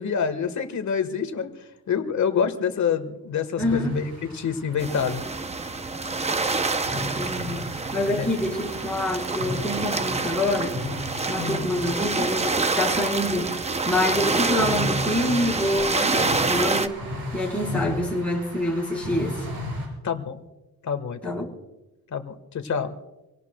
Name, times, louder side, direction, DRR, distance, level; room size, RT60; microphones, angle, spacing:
voice 1, 0.0-1.5 1.9-5.2 8.2-8.3 11.3-11.7 20.0-20.4 20.8-21.4 22.1-22.9, left 7 dB, 50° left, 8 dB, 1.5 m, -27 dB
voice 2, 3.6-4.0 6.9-7.6 7.9-10.8 11.3-13.5 13.8-17.0 17.3-19.4 21.2-21.5, left 1 dB, 5° left, -3 dB, 4.2 m, -26 dB
sound 1, 3.6-19.9, left 1 dB, 70° right, 6.4 m, -36 dB
sound 2, 4.8-16.9, right 3 dB, 20° right, 0.6 m, -27 dB
26.5 x 17.5 x 2.3 m, 1.0 s
wide cardioid pair, 150°, 37 cm